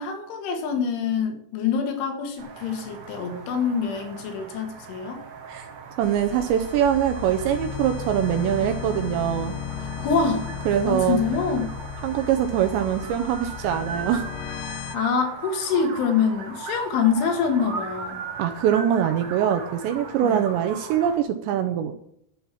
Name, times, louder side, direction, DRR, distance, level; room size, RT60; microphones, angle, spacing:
voice 1, 0.0-5.2 9.8-10.5 10.9-11.7 14.7-18.2 20.2-20.4, left 6 dB, 75° left, 4 dB, 4.3 m, -25 dB
sound 1, 2.4-21.2, right 4 dB, 60° right, 2.0 m, -39 dB
sound 2, 6.0-15.0, left 9 dB, 90° left, 2.4 m, -35 dB
voice 2, 6.0-9.5 10.7-11.2 12.0-14.3 18.4-21.9, right 10 dB, 75° right, 7 dB, 2.7 m, -23 dB
11.5 x 7.7 x 7.2 m, 0.71 s
omnidirectional pair, 5.8 m